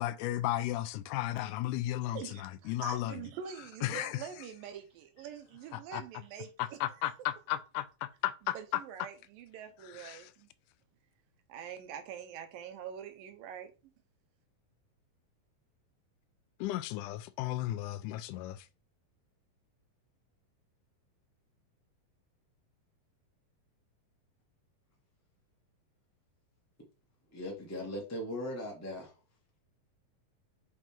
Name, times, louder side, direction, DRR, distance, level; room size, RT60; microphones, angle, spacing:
voice 1, 0.0-3.2 3.8-4.2 5.7-6.0 6.6-8.6 9.9-10.3 16.6-18.7, left 14 dB, 80° left, 1.9 m, -35 dB
voice 2, 2.1-7.1 8.5-10.5 11.5-13.9, right 8 dB, 80° right, 2.6 m, -45 dB
voice 3, 27.3-29.1, left 1 dB, 25° left, 0.3 m, -39 dB
6.1 x 3.6 x 4.4 m
omnidirectional pair, 4.0 m